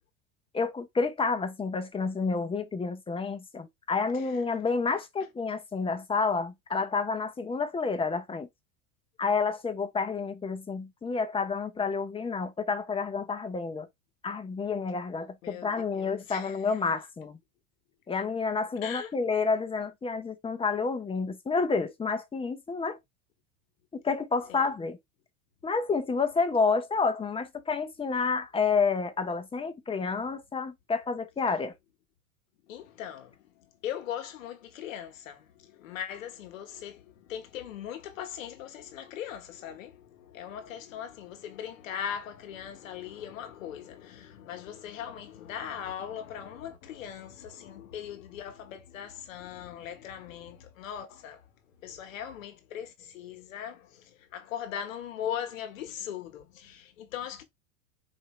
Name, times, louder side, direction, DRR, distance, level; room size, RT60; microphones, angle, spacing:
voice 1, 0.5-8.5 9.2-13.9 14.2-17.4 18.1-23.0 24.0-25.0 25.6-31.7, left 4 dB, 15° left, 0.7 m, -29 dB
voice 2, 15.2-16.8 18.8-19.1 24.5-24.7 32.7-51.5 51.8-57.4, left 9 dB, 85° left, 1.3 m, -40 dB
4.5 x 2.7 x 3.1 m
supercardioid pair, 110°, 39 cm